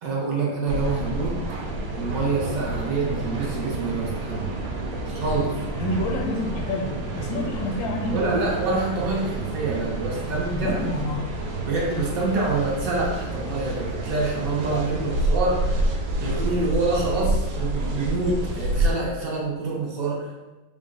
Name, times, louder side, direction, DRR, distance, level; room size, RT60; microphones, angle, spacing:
voice 1, 0.0-1.4 1.9-4.5 5.1-5.5 8.1-10.8 11.6-15.8 16.2-20.3, right 3 dB, 60° right, -4 dB, 1.0 m, -26 dB
sound 1, 0.7-18.9, right 2 dB, 85° right, 1.3 m, -28 dB
voice 2, 5.8-8.3 10.5-11.3, left 2 dB, 85° left, 1 dB, 1.4 m, -28 dB
3.8 x 2.1 x 3.6 m, 1.1 s
omnidirectional pair, 2.0 m